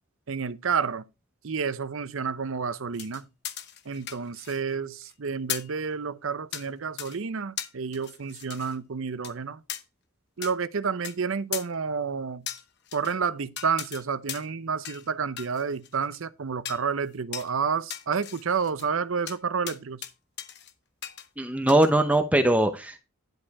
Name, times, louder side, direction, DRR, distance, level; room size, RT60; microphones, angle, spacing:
voice 1, 0.3-1.0 1.4-3.3 3.9-9.6 10.4-12.5 12.9-20.0, right 5 dB, 65° right, 0.6 m, -30 dB
sound 1, 2.9-4.7 5.0-5.1 5.5-5.8 6.5-6.7 7.0-7.2 7.6-8.7 9.2-9.3 9.7-9.8 10.4-10.5 11.0-11.1 11.5-11.7 12.5-13.1 13.6-14.0 14.3-14.6 14.8-15.1 15.4-16.2 16.6-16.9 17.3-17.5 17.9-18.9 19.3-19.4 19.7-20.1 20.4-20.7 21.0-21.3 21.7-21.9, left 10 dB, 50° left, 0.9 m, -37 dB
voice 2, 21.4-23.0, right 1 dB, 5° right, 0.7 m, -21 dB
10.5 x 5.0 x 4.7 m
head